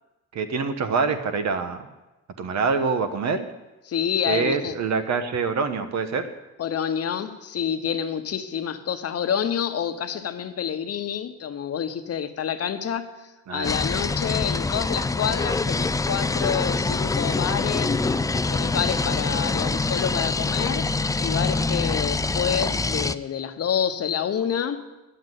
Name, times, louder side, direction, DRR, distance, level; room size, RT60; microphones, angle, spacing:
voice 1, 0.3-1.9 2.4-3.4 4.3-6.3 13.5-13.7, right 5 dB, 65° right, 1.2 m, -25 dB
voice 2, 3.9-4.8 6.6-13.1 13.5-18.0 18.5-20.9 21.2-24.8, left 8 dB, 55° left, 1.0 m, -28 dB
sound 1, 13.6-23.1, left 3 dB, 10° left, 0.4 m, -25 dB
10.5 x 7.7 x 9.3 m
cardioid pair, 90°, 30 cm